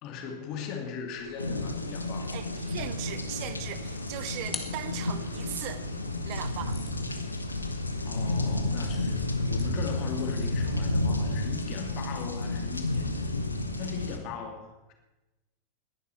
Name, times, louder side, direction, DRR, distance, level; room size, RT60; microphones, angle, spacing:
voice 1, 0.0-2.4 4.2-4.3 8.0-13.1 13.7-14.9, left 6 dB, 40° left, 2.6 m, -39 dB
sound 1, 1.1-10.7, right 1 dB, 85° right, 4.6 m, -53 dB
sound 2, 1.4-14.2, left 2 dB, 80° left, 1.3 m, -31 dB
voice 2, 2.3-5.9 6.2-6.8, right 13 dB, 45° right, 0.8 m, -38 dB
sound 3, 4.5-5.6 6.3-13.9, left 4 dB, 15° left, 1.8 m, -49 dB
20.0 x 11.0 x 4.5 m
figure-of-eight pair, 90°, 0 cm